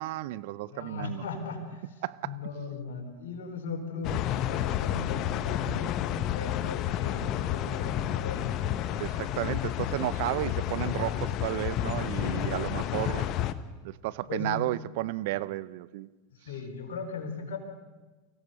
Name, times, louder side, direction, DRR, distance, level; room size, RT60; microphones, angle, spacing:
voice 1, 0.0-1.2 2.0-2.4 9.0-13.3 13.8-16.1, right 17 dB, 65° right, 0.7 m, -33 dB
voice 2, 0.7-1.8 2.2-4.1 4.4-8.8 12.2-13.0 14.3-14.6 16.3-17.6, left 4 dB, 75° left, 4.2 m, -38 dB
sound 1, 4.0-13.5, left 11 dB, 45° left, 1.0 m, -30 dB
24.5 x 16.5 x 6.9 m
hypercardioid pair, 100°, 0 cm